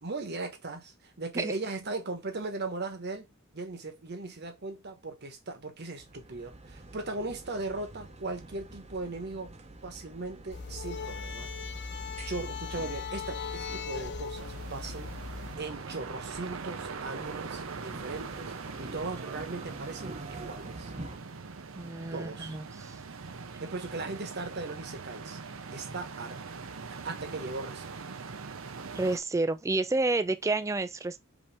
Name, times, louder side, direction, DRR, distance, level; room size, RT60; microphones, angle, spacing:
voice 1, 0.0-3.3 3.5-9.5 9.8-11.5 12.2-15.1 15.6-18.5 18.8-20.9 22.1-22.6 23.6-25.4 25.7-26.6 26.8-28.0, right 3 dB, 55° right, 1.2 m, -38 dB
sound 1, 6.0-21.2, right 2 dB, 30° right, 0.8 m, -47 dB
sound 2, 10.5-15.5, left 5 dB, 55° left, 0.6 m, -38 dB
sound 3, 14.3-29.2, right 4 dB, 75° right, 0.7 m, -42 dB
voice 2, 21.7-22.7 28.9-31.2, right 2 dB, 15° right, 0.4 m, -29 dB
5.2 x 2.9 x 3.4 m
head